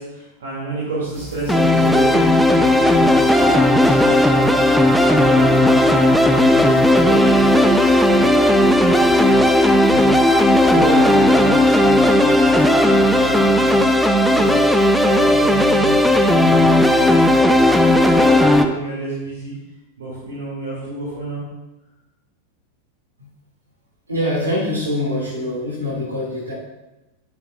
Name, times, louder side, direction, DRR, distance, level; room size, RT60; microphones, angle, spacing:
voice 1, 0.0-5.8 6.2-9.4 9.8-10.1 10.6-19.5 20.0-21.4, right 2 dB, 60° right, -6 dB, 2.5 m, -29 dB
sound 1, 1.5-18.7, left 1 dB, ahead, 0.6 m, -14 dB
voice 2, 24.1-26.5, left 1 dB, 80° right, -4 dB, 3.2 m, -24 dB
10.5 x 7.9 x 2.5 m, 1.0 s
figure-of-eight pair, 90°, 0 cm